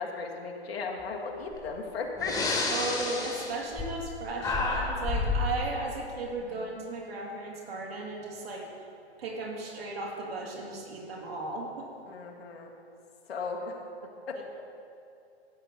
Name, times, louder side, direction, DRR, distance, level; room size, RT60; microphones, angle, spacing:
voice 1, 0.0-2.4 6.5-6.6 12.1-12.7 13.3-13.7 14.3-14.4, left 4 dB, 65° left, 0 dB, 1.8 m, -36 dB
Breathing, 1.5-1.7 2.2-4.1 4.4-5.5, left 3 dB, 10° left, 1.6 m, -30 dB
voice 2, 2.7-8.7 9.2-11.9 14.3-14.4, right 3 dB, 65° right, -2 dB, 2.7 m, -36 dB
13.5 x 8.5 x 3.9 m, 2.5 s
figure-of-eight pair, 120°, 32 cm